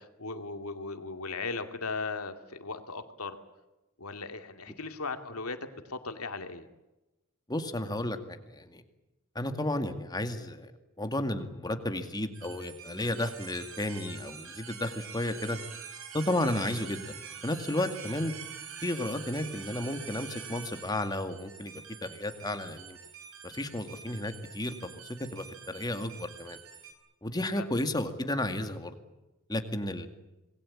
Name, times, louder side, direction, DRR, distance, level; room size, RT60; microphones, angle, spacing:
voice 1, 0.0-3.4 4.0-5.6 5.9-6.6 27.6-27.7, left 4 dB, 85° left, 7 dB, 2.5 m, -37 dB
voice 2, 7.5-8.8 9.3-10.7 11.0-15.6 16.1-18.3 18.8-21.7 22.0-23.0 23.4-24.8 25.3-26.6 27.2-29.0 29.5-30.1, left 1 dB, 20° left, 7 dB, 2.2 m, -33 dB
sound 1, 12.3-26.9, right 7 dB, 70° right, 5.3 m, -46 dB
26.5 x 20.5 x 8.7 m, 1.0 s
head